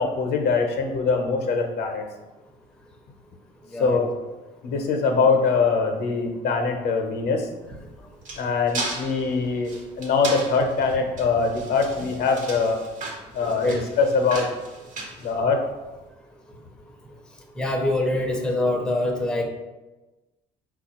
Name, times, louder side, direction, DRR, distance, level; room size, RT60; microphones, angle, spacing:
voice 1, 0.0-2.0 3.8-4.2 4.6-7.5 8.4-9.7 10.0-12.8 13.3-14.5 15.2-15.6, left 4 dB, 70° left, 4 dB, 0.7 m, -23 dB
sound 1, 7.7-15.9, right 3 dB, 50° right, 1.1 m, -36 dB
voice 2, 13.4-13.8 17.6-19.5, left 1 dB, 5° left, 2 dB, 0.5 m, -24 dB
4.2 x 2.3 x 4.2 m, 1.1 s
cardioid pair, 110°, 17 cm